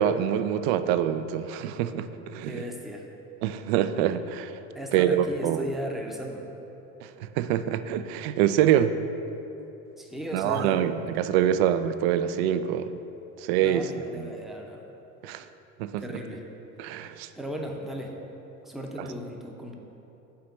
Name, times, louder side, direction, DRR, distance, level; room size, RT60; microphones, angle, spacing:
voice 1, 0.0-2.6 3.4-4.6 4.9-5.7 7.0-9.0 10.3-13.0 13.4-13.9 14.1-14.3 15.2-15.5 15.8-16.0 16.8-17.3 19.0-19.1, right 10 dB, 50° right, 12 dB, 0.4 m, -25 dB
voice 2, 2.4-3.1 4.7-6.4 10.0-10.8 13.6-14.8 16.0-16.4 17.4-18.2 18.6-19.7, equal, ahead, 1 dB, 0.7 m, -36 dB
5.7 x 5.0 x 6.5 m, 3.0 s
figure-of-eight pair, 65°, 41 cm